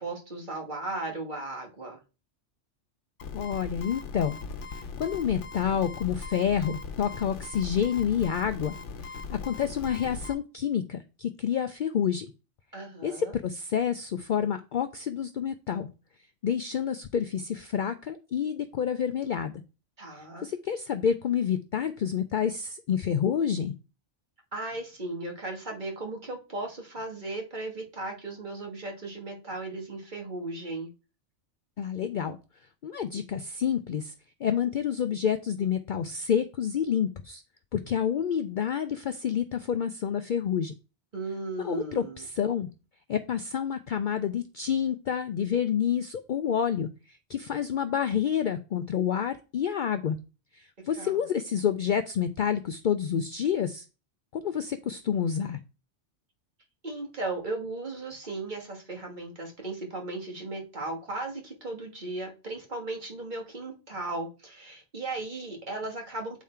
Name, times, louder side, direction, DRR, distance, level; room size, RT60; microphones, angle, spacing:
voice 1, 0.0-2.0 12.7-13.3 20.0-20.5 24.5-30.9 41.1-42.2 51.0-51.2 56.8-66.4, right 2 dB, 40° right, 1 dB, 1.6 m, -36 dB
sound 1, 3.2-10.3, left 4 dB, 75° left, 1.1 m, -39 dB
voice 2, 3.3-4.4 4.7-8.7 9.3-12.3 13.0-15.9 16.4-19.5 20.4-23.7 31.8-32.4 32.8-34.1 34.4-37.4 37.7-40.7 41.6-42.7 43.1-50.2 50.5-53.8 54.3-55.6, left 8 dB, 60° left, 9 dB, 0.5 m, -28 dB
8.3 x 3.6 x 4.3 m, 0.32 s
omnidirectional pair, 1.2 m